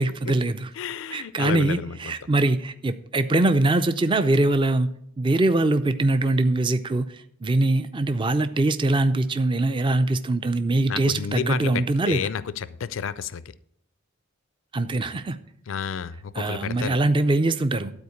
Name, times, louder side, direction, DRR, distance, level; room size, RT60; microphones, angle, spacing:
voice 1, 0.0-0.7 1.1-12.3 14.7-15.4 16.3-17.9, right 2 dB, 25° right, 10 dB, 0.4 m, -23 dB
voice 2, 0.8-1.9 10.9-13.4 15.7-17.0, left 7 dB, 65° left, 16 dB, 0.4 m, -31 dB
12.0 x 4.3 x 8.3 m, 0.74 s
head